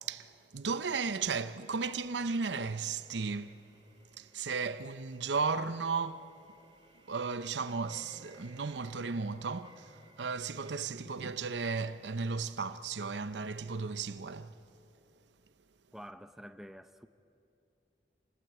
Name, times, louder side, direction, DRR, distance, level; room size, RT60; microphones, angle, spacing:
voice 1, 0.0-3.6 4.2-6.3 7.1-14.6, right 4 dB, 85° right, 0.7 m, -35 dB
sound 1, 1.0-10.7, right 1 dB, 30° right, 3.8 m, -62 dB
voice 2, 15.9-17.1, equal, ahead, 0.7 m, -48 dB
26.5 x 19.5 x 9.1 m
head